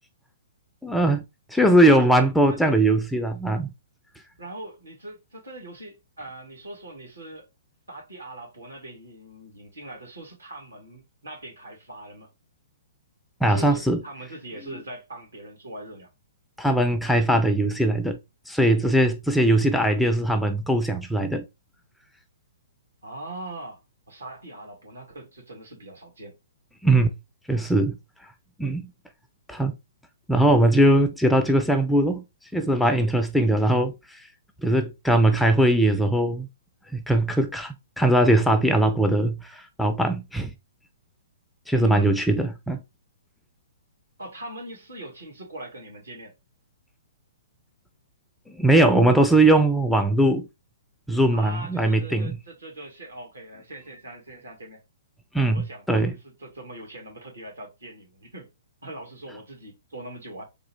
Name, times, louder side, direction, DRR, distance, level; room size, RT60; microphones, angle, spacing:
voice 1, 0.8-1.2 1.5-3.7 13.4-14.0 16.6-18.2 18.5-21.4 26.8-27.1 27.5-28.0 28.6-28.9 29.5-29.7 30.3-32.2 32.5-34.2 34.6-36.5 36.9-40.5 41.7-42.8 48.5-50.5 51.1-52.4 55.3-56.1, right 1 dB, 5° left, 0.4 m, -20 dB
voice 2, 4.4-7.5 7.9-12.3 13.4-16.1 23.0-26.3 41.7-42.1 44.2-46.3 51.3-54.8 55.5-58.5 58.8-60.4, right 1 dB, 75° right, 1.8 m, -41 dB
3.7 x 2.4 x 3.2 m
figure-of-eight pair, 120°, 0 cm